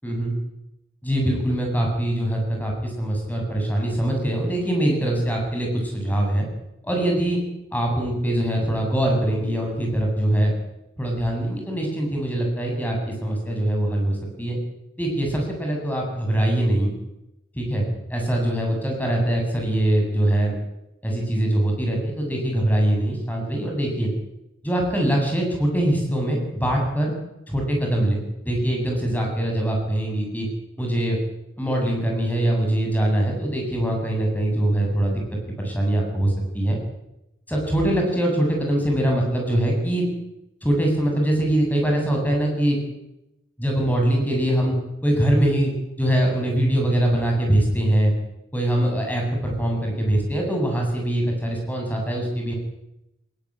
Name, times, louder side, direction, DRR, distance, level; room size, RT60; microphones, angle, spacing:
voice 1, 0.0-0.3 1.0-6.5 6.8-7.4 7.7-10.5 11.0-14.6 15.0-16.9 17.5-17.8 18.1-20.6 21.0-24.1 24.6-27.1 27.5-30.5 30.8-31.2 31.6-35.2 35.6-36.8 37.5-40.1 40.6-42.8 43.6-44.7 45.0-45.7 46.0-48.1 48.5-52.5, right 1 dB, 10° left, 1 dB, 7.8 m, -23 dB
20.5 x 19.5 x 9.1 m, 0.89 s
head